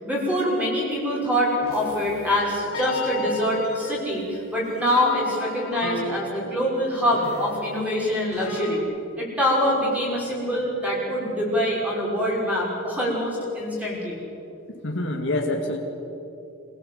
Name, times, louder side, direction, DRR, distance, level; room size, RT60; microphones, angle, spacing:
voice 1, 0.0-8.8 9.2-14.2, equal, 5° right, -5 dB, 5.9 m, -24 dB
sound 1, 1.6-8.8, left 2 dB, 75° left, 3.1 m, -36 dB
voice 2, 14.8-15.8, left 1 dB, 55° left, 1 dB, 2.2 m, -26 dB
26.5 x 16.5 x 8.3 m, 2.9 s
head